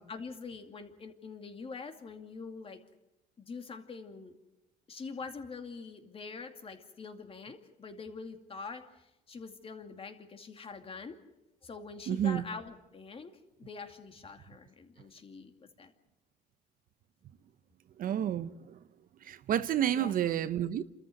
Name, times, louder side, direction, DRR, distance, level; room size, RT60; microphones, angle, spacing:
voice 1, 0.1-2.8 3.4-4.3 4.9-11.2 11.6-13.3 13.6-15.9 19.9-20.3, left 4 dB, 35° left, 2.5 m, -44 dB
voice 2, 12.1-12.4 18.0-18.5 19.3-20.8, right 10 dB, 55° right, 0.8 m, -29 dB
29.0 x 14.0 x 7.9 m
cardioid pair, 110°, 17 cm